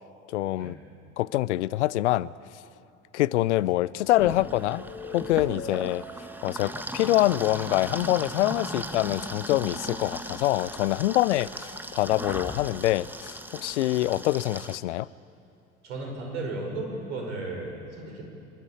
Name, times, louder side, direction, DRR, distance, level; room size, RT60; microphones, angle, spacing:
voice 1, 0.3-0.8 1.2-2.3 3.1-4.8 5.1-6.0 6.4-15.1, left 16 dB, 75° left, 0.5 m, -25 dB
sound 1, 3.6-8.2, left 2 dB, 45° left, 4.3 m, -43 dB
sound 2, 4.2-14.8, right 1 dB, 5° right, 1.4 m, -38 dB
voice 2, 15.8-18.2, right 2 dB, 75° right, 5.0 m, -34 dB
26.0 x 12.5 x 8.5 m
hypercardioid pair, 65°, 35 cm